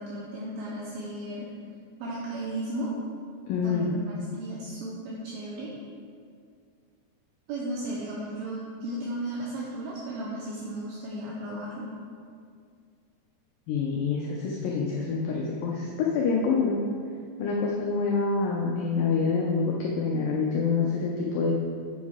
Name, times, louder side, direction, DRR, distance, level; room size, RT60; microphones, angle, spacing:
voice 1, 0.0-1.5 2.0-3.0 3.6-4.0 4.3-5.7 7.5-11.9, right 1 dB, 75° right, -4 dB, 2.5 m, -35 dB
voice 2, 3.5-4.0 13.7-16.8 17.4-21.6, left 4 dB, 80° left, -2 dB, 2.0 m, -26 dB
8.3 x 7.2 x 3.6 m, 2.2 s
omnidirectional pair, 4.8 m